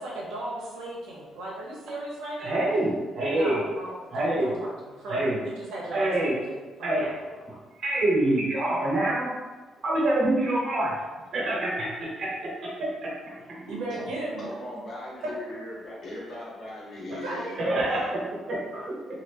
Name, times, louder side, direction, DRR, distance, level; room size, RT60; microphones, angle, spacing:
voice 1, 0.0-2.6 3.3-7.1 13.7-14.5 17.2-17.6, right 1 dB, 90° right, -3 dB, 0.8 m, -36 dB
voice 2, 2.4-3.6 4.1-4.5 5.1-5.4 5.9-6.4 6.8-7.1 7.5-9.3 9.8-10.9 11.3-13.8 17.6-18.2 18.5-18.8, right 1 dB, 60° right, -4 dB, 1.1 m, -26 dB
voice 3, 14.4-18.5, left 1 dB, 60° left, -4 dB, 1.1 m, -39 dB
2.8 x 2.5 x 3.4 m, 1.3 s
cardioid pair, 90°, 0 cm